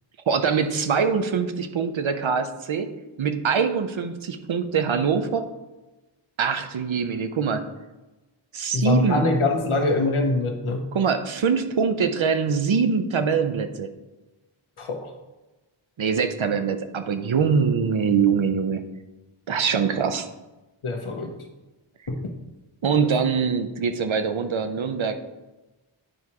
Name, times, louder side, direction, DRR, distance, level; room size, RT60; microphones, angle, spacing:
voice 1, 0.3-2.9 3.2-5.4 6.4-7.6 8.5-9.2 10.9-13.9 16.0-18.8 19.5-20.3 22.8-25.2, right 6 dB, 70° right, 8 dB, 0.8 m, -23 dB
voice 2, 8.7-10.8 14.8-15.1 20.8-21.3 22.1-22.3 23.0-23.1, left 2 dB, 75° left, 3 dB, 1.1 m, -24 dB
9.8 x 4.6 x 2.9 m, 1.1 s
cardioid pair, 45°, 50 cm